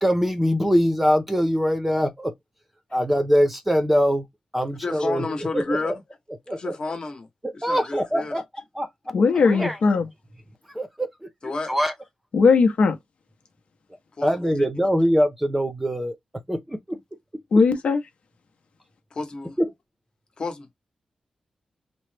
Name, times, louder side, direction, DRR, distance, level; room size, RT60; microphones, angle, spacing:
voice 1, 0.0-2.3 2.9-4.3 4.5-5.3 5.5-5.9 6.5-6.8 7.6-8.4 8.7-8.9 9.4-9.8 10.7-11.3 11.7-11.9 14.2-16.1 16.5-17.0 19.6-19.7, equal, 10° right, 0.6 m, -23 dB
voice 2, 4.8-5.9 6.6-7.3 7.5-8.3 11.4-11.7 14.2-14.3 14.6-14.7 19.1-19.6 20.4-20.7, left 3 dB, 45° left, 1.0 m, -30 dB
voice 3, 9.1-10.0 12.3-13.0 17.5-18.0, left 4 dB, 70° left, 0.8 m, -18 dB
3.0 x 2.0 x 3.2 m
wide cardioid pair, 130°, 2 cm